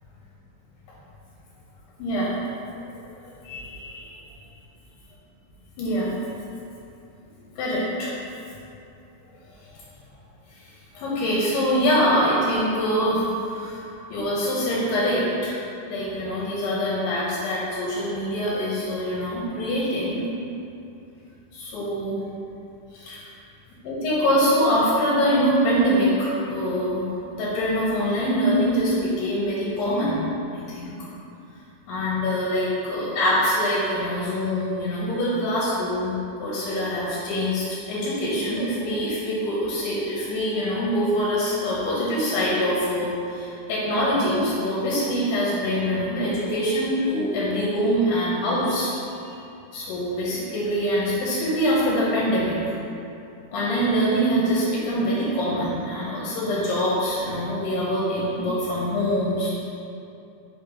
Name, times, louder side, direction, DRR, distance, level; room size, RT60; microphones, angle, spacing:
voice 1, 3.2-4.1 5.8-6.1 7.6-8.1 9.7-9.8 10.5-10.7 10.9-13.8 14.1-15.6 15.9-20.2 21.7-22.2 22.9-23.3 23.8-30.2 30.5-30.9 31.9-48.9 49.2-49.4 49.7-52.8 53.5-59.5, equal, 85° left, -6 dB, 2.5 m, -24 dB
6.6 x 2.9 x 5.0 m, 2.7 s
omnidirectional pair, 3.7 m